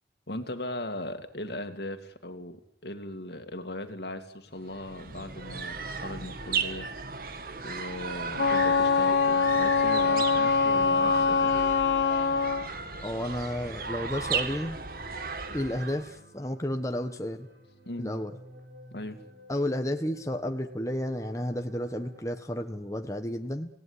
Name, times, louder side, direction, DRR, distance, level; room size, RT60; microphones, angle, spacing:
voice 1, 0.3-6.9 7.6-11.6 17.9-18.2 18.9-19.2, left 1 dB, 65° left, 8 dB, 2.3 m, -38 dB
sound 1, 4.6-16.2, right 5 dB, 50° right, 2.0 m, -35 dB
sound 2, 8.0-22.5, equal, 75° right, 7.6 m, -54 dB
Wind instrument woodwind instrument, 8.4-12.7, left 5 dB, 85° left, 1.3 m, -24 dB
voice 2, 13.0-14.8 15.5-17.5 18.0-18.3 19.5-23.7, left 1 dB, 20° left, 5 dB, 1.3 m, -32 dB
27.0 x 18.0 x 9.7 m, 0.76 s
head